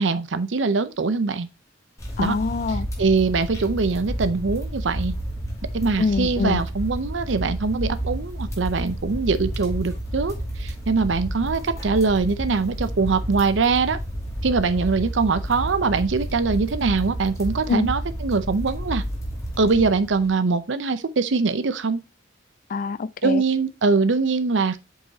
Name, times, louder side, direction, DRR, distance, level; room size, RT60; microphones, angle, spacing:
voice 1, 0.0-1.5 2.2-2.4 3.0-5.1 5.7-14.0 14.4-19.0 19.6-22.0 23.2-24.8, right 4 dB, 75° right, 0.6 m, -22 dB
sound 1, 2.0-20.3, equal, 20° left, 2.4 m, -31 dB
voice 2, 2.2-2.9 6.0-6.6 17.7-17.9 22.7-23.4, left 4 dB, 45° left, 0.4 m, -24 dB
7.7 x 5.5 x 2.7 m
head